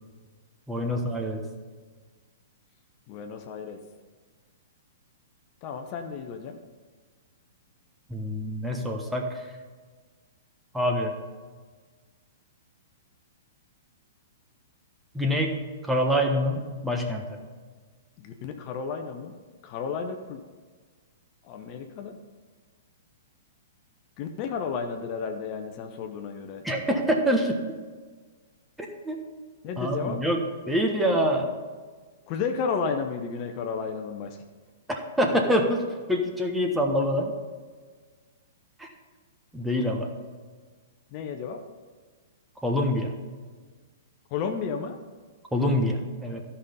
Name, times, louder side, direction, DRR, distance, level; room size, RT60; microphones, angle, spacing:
voice 1, 0.7-1.4 8.1-9.5 10.7-11.2 15.1-15.5 15.8-17.4 26.6-27.5 28.8-29.2 29.8-30.4 30.7-31.5 34.9-37.3 38.8-38.9 39.5-40.1 42.6-43.1 45.5-46.4, equal, 5° right, 2 dB, 1.3 m, -26 dB
voice 2, 3.1-3.8 5.6-6.6 18.2-19.4 19.6-20.4 21.5-22.2 24.2-26.6 29.6-30.2 32.3-34.4 41.1-41.6 44.3-45.0, left 5 dB, 40° left, 5 dB, 0.8 m, -32 dB
13.0 x 5.6 x 5.3 m, 1.5 s
hypercardioid pair, 115°, 0 cm